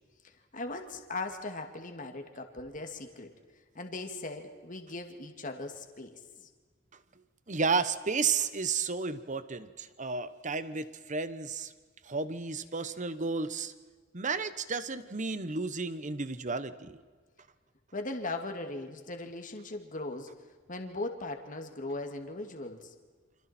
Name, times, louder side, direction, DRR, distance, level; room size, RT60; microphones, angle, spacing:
voice 1, 0.5-3.3 3.7-6.2 17.9-20.3 20.7-22.9, left 2 dB, 45° left, 5 dB, 2.3 m, -39 dB
voice 2, 7.5-11.7 12.0-13.7 14.1-17.0, right 4 dB, 40° right, 13 dB, 1.2 m, -32 dB
29.0 x 26.5 x 4.5 m, 1.5 s
head